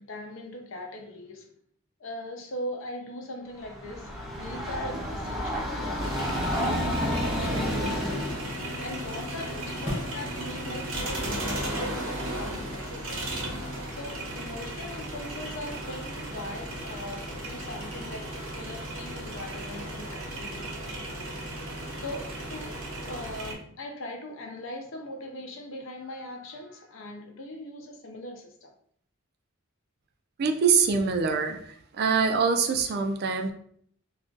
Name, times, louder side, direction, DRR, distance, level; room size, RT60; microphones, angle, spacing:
voice 1, 0.0-1.5 2.0-6.2 6.6-8.4 8.8-13.4 13.9-20.7 22.0-28.7, left 1 dB, 65° left, 3 dB, 0.6 m, -40 dB
Train, 3.6-8.5, equal, ahead, 0.6 m, -30 dB
sound 1, 6.0-23.5, right 1 dB, 75° right, 0.9 m, -35 dB
sound 2, 8.7-14.0, equal, 25° left, 1.1 m, -43 dB
voice 2, 30.4-33.5, right 5 dB, 45° right, 5 dB, 0.3 m, -24 dB
2.4 x 2.3 x 3.7 m, 0.63 s
head